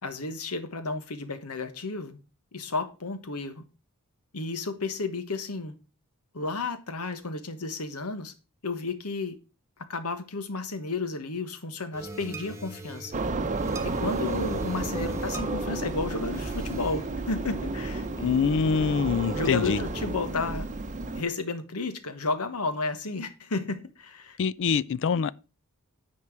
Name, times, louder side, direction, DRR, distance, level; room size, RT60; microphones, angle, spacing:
voice 1, 0.0-2.2 2.5-3.6 4.3-5.7 6.3-8.3 8.6-9.4 9.9-13.1 13.8-18.1 19.3-20.7 21.1-24.4, left 3 dB, 85° left, 1.2 m, -32 dB
sound 1, 11.9-20.6, right 1 dB, 15° right, 1.4 m, -41 dB
sound 2, 13.1-21.2, right 3 dB, 35° right, 0.8 m, -32 dB
voice 2, 18.2-19.8 24.4-25.3, left 6 dB, 60° left, 0.4 m, -25 dB
9.5 x 4.4 x 5.9 m
head